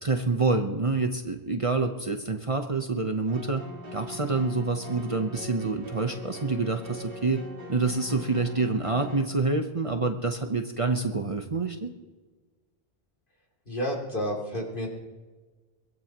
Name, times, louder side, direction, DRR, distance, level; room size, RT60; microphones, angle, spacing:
voice 1, 0.0-3.6 3.9-7.4 7.7-11.9, right 3 dB, 35° right, 5 dB, 0.9 m, -27 dB
sound 1, 3.3-9.2, left 1 dB, 60° right, 2.1 m, -42 dB
voice 2, 13.7-14.9, equal, 55° left, -2 dB, 3.0 m, -30 dB
23.0 x 17.0 x 3.0 m, 1.3 s
omnidirectional pair, 1.0 m